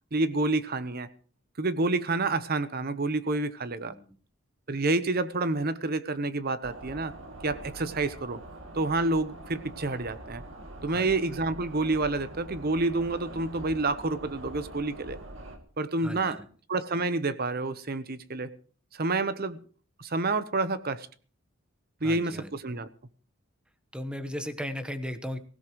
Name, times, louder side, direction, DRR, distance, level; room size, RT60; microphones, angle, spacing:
voice 1, 0.1-1.1 1.6-3.9 4.7-7.1 7.4-8.4 8.7-10.4 10.8-15.2 15.8-16.4 16.7-18.5 18.9-19.6 20.0-21.1 22.0-22.9, right 2 dB, 45° right, 13 dB, 0.9 m, -28 dB
sound 1, 6.6-15.6, right 1 dB, 65° right, 2.5 m, -44 dB
voice 2, 16.0-16.3 22.0-22.5 23.9-25.4, equal, 5° right, 9 dB, 1.1 m, -36 dB
23.0 x 16.5 x 3.1 m, 0.43 s
head